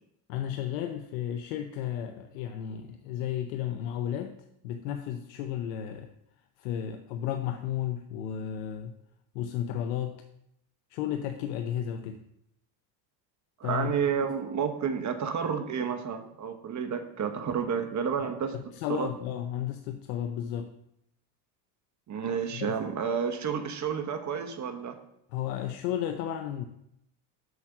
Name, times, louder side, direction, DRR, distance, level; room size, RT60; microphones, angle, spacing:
voice 1, 0.3-4.4 4.6-6.1 6.6-8.9 9.3-10.2 10.9-12.2 13.6-14.0 18.5-20.7 22.5-22.8 25.3-26.7, left 10 dB, 85° left, 6 dB, 0.7 m, -33 dB
voice 2, 13.6-18.5 18.9-19.1 22.1-25.0, right 7 dB, 35° right, 7 dB, 1.1 m, -30 dB
6.4 x 5.2 x 6.0 m, 0.78 s
supercardioid pair, 95°, 48 cm